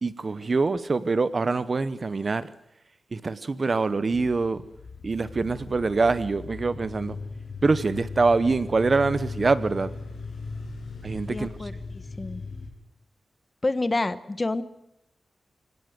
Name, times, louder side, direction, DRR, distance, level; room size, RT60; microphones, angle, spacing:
voice 1, 0.0-2.5 3.1-4.6 5.0-7.2 7.6-9.9 11.0-11.5, right 3 dB, 35° right, 0.9 m, -24 dB
sound 1, 4.1-12.7, left 4 dB, 75° left, 5.6 m, -38 dB
voice 2, 11.2-12.4 13.6-14.6, left 2 dB, 25° left, 1.0 m, -29 dB
24.5 x 17.5 x 7.9 m
wide cardioid pair, 155°, 0 cm